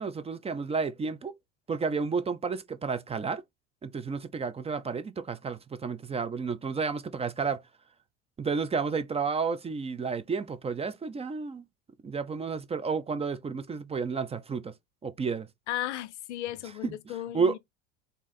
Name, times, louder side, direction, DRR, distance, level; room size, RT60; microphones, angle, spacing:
voice 1, 0.0-1.3 1.7-3.4 3.8-7.6 8.4-11.6 12.0-14.7 15.0-15.5 16.8-17.0 17.3-17.6, right 5 dB, 20° right, 0.5 m, -31 dB
voice 2, 15.7-17.6, left 14 dB, 90° left, 0.5 m, -35 dB
3.6 x 2.7 x 4.1 m
hypercardioid pair, 85°, 34 cm